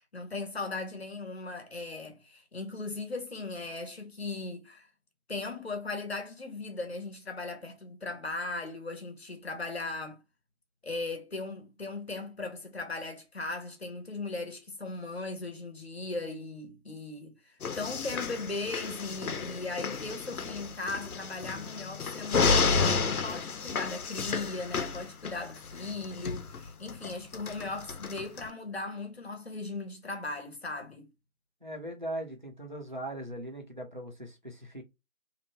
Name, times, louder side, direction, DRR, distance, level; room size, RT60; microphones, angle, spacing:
voice 1, 0.1-4.9 5.3-10.2 10.8-31.1, left 3 dB, 45° left, 0.7 m, -38 dB
sound 1, 17.6-28.5, left 5 dB, 80° left, 0.6 m, -31 dB
voice 2, 31.6-34.8, right 1 dB, 35° right, 0.5 m, -39 dB
2.7 x 2.1 x 2.7 m
figure-of-eight pair, 165°, 43 cm